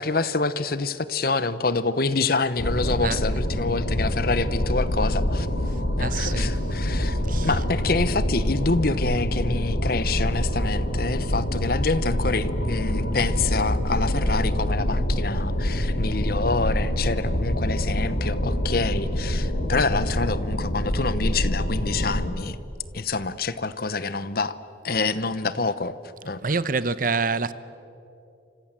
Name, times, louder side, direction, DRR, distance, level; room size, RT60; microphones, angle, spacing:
voice 1, 0.0-5.5 6.0-22.6 22.9-24.6 24.8-26.5, left 3 dB, 50° left, 1.0 m, -27 dB
sound 1, 2.6-22.3, equal, 80° left, 2.3 m, -25 dB
voice 2, 6.0-6.6 7.3-7.5 26.4-27.5, right 4 dB, 45° right, 0.9 m, -26 dB
29.5 x 26.5 x 7.5 m
head